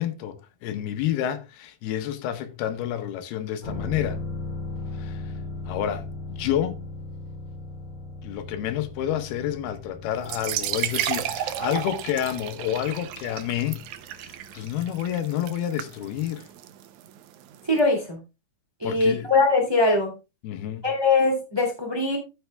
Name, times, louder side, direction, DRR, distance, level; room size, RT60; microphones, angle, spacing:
voice 1, 0.0-4.2 4.9-5.3 5.7-6.8 8.2-13.8 14.2-16.5 18.8-19.3 20.4-20.9, left 11 dB, 85° left, 3.0 m, -29 dB
sound 1, 3.6-15.2 15.5-15.6, left 2 dB, 25° left, 3.4 m, -38 dB
sound 2, 10.2-17.8, right 12 dB, 75° right, 1.8 m, -33 dB
voice 2, 17.7-18.2 18.8-20.1 20.8-22.2, left 3 dB, 10° right, 2.0 m, -21 dB
14.5 x 5.5 x 3.4 m
omnidirectional pair, 4.4 m